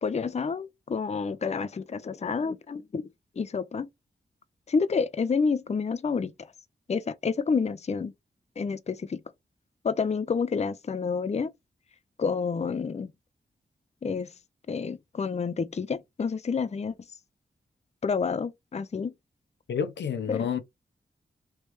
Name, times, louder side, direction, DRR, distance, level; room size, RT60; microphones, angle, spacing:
voice 1, 0.0-3.1 3.4-3.9 4.7-6.5 6.9-8.1 8.6-9.2 9.8-11.5 12.2-13.1 14.0-14.3 14.7-16.9 18.0-19.1 20.3-20.5, left 5 dB, 40° left, 0.5 m, -29 dB
voice 2, 19.7-20.6, left 7 dB, 80° left, 0.6 m, -29 dB
3.3 x 3.0 x 3.2 m
cardioid pair, 45°, 18 cm